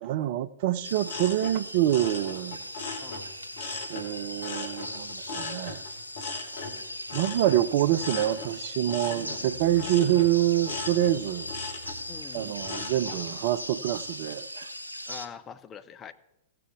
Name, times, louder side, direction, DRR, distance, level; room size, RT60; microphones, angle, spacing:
voice 1, 0.0-2.6 3.9-5.8 7.1-11.5 12.3-14.7, right 12 dB, 45° right, 0.4 m, -26 dB
sound 1, 0.8-15.3, left 1 dB, 85° right, 0.6 m, -39 dB
sound 2, 1.0-4.1 4.4-13.2 13.7-14.1, left 4 dB, 55° left, 1.4 m, -39 dB
voice 2, 3.0-3.3 6.6-6.9 9.0-9.4 9.7-9.8 12.1-12.6 15.1-16.1, left 7 dB, 20° left, 0.6 m, -45 dB
15.5 x 6.8 x 3.6 m
figure-of-eight pair, 100°, 0 cm